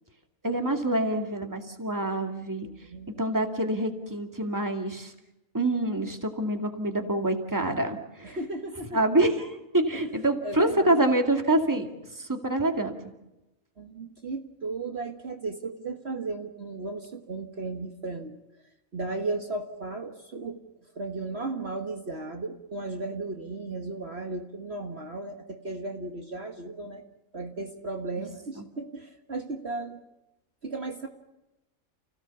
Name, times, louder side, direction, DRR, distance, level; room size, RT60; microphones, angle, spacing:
voice 1, 0.4-2.7 3.2-5.1 5.5-8.4 8.9-12.9 28.6-28.7, right 1 dB, 15° right, 4 dB, 2.2 m, -26 dB
voice 2, 2.6-3.3 8.2-9.0 9.9-11.0 13.8-18.4 18.9-20.6 21.0-27.0 27.3-30.0 30.6-31.1, right 3 dB, 50° right, 4 dB, 1.7 m, -35 dB
29.5 x 17.0 x 7.1 m, 0.97 s
omnidirectional pair, 1.5 m